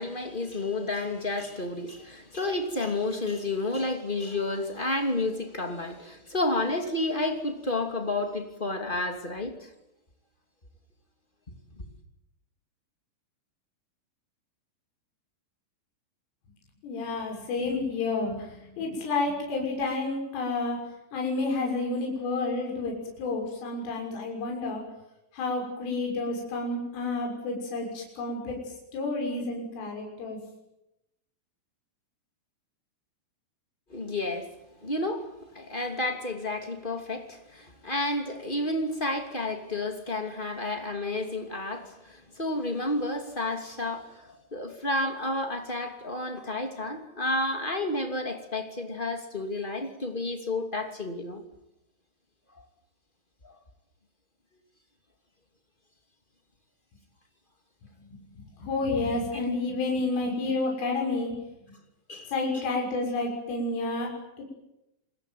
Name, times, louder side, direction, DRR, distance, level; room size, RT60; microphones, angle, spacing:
voice 1, 0.0-9.7 11.7-11.8 33.9-34.5 34.8-51.4 53.4-53.5 62.1-62.6, left 2 dB, 25° left, 5 dB, 1.0 m, -31 dB
voice 2, 16.8-20.8 21.1-24.8 25.3-28.6 28.9-30.4 58.4-61.4 62.3-64.1 64.4-64.5, left 3 dB, 70° left, 0 dB, 8.9 m, -30 dB
28.0 x 21.5 x 9.4 m, 0.88 s
omnidirectional pair, 6.0 m